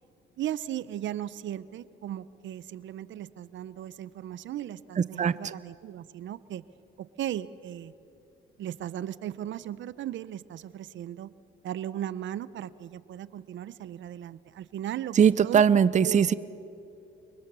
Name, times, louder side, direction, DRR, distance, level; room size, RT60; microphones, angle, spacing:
voice 1, 0.4-6.6 7.0-7.9 8.6-11.3 11.6-15.6 16.0-16.3, right 11 dB, 70° right, 17 dB, 0.7 m, -37 dB
voice 2, 15.2-16.3, right 7 dB, 35° right, 17 dB, 0.6 m, -20 dB
30.0 x 24.0 x 6.9 m, 2.7 s
cardioid pair, 90°, 20 cm